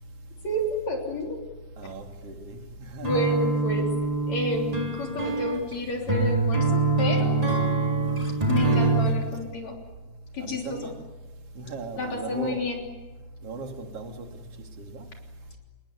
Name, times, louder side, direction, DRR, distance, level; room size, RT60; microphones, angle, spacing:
voice 1, 0.4-1.4 3.0-3.9 4.3-7.4 8.5-9.8 10.3-10.9 12.0-12.8, left 1 dB, 60° left, 1 dB, 4.7 m, -30 dB
voice 2, 1.8-3.3 8.0-8.1 10.4-11.0 11.6-12.6 13.4-14.4 14.8-15.1, right 3 dB, 50° right, 4 dB, 3.6 m, -37 dB
sound 1, 3.0-9.2, right 3 dB, 10° right, 3.4 m, -24 dB
27.5 x 21.0 x 9.8 m, 1.2 s
omnidirectional pair, 3.6 m